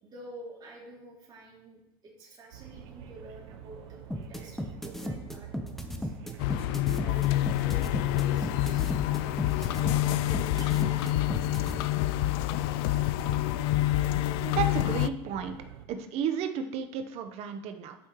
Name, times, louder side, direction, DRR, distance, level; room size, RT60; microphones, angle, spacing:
voice 1, 0.0-6.1 6.9-11.7, right 2 dB, 35° right, -2 dB, 2.9 m, -49 dB
sound 1, 2.5-15.9, right 9 dB, 80° right, 1.0 m, -47 dB
sound 2, 4.1-11.7, equal, ahead, 0.9 m, -35 dB
sound 3, 6.4-15.1, left 15 dB, 70° left, 0.4 m, -27 dB
voice 2, 14.4-15.6 15.9-18.0, right 7 dB, 55° right, 7 dB, 1.0 m, -33 dB
11.0 x 5.8 x 3.1 m, 0.83 s
supercardioid pair, 115°, 13 cm